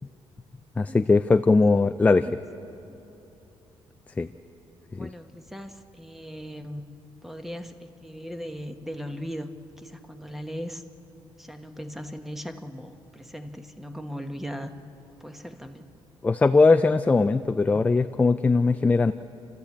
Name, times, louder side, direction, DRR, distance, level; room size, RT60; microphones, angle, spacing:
voice 1, 0.8-2.3 4.2-4.3 4.9-5.1 16.2-19.1, left 3 dB, 15° left, 10 dB, 0.4 m, -20 dB
voice 2, 4.9-6.8 7.2-9.5 9.8-10.8 11.4-14.7 15.2-15.9, equal, 5° right, 7 dB, 1.2 m, -38 dB
30.0 x 13.5 x 8.4 m, 2.9 s
cardioid pair, 130°, 10 cm